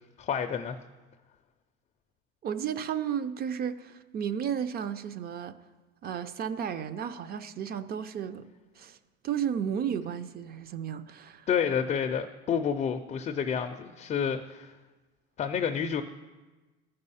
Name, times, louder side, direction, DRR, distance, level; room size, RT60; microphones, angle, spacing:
voice 1, 0.2-0.8 11.5-14.7 15.4-16.0, left 7 dB, 25° left, 0.4 m, -29 dB
voice 2, 2.4-5.6 6.0-8.5 8.8-9.0 9.2-11.5, right 8 dB, 30° right, 0.5 m, -33 dB
13.5 x 5.4 x 5.5 m
cardioid pair, 130°, 30 cm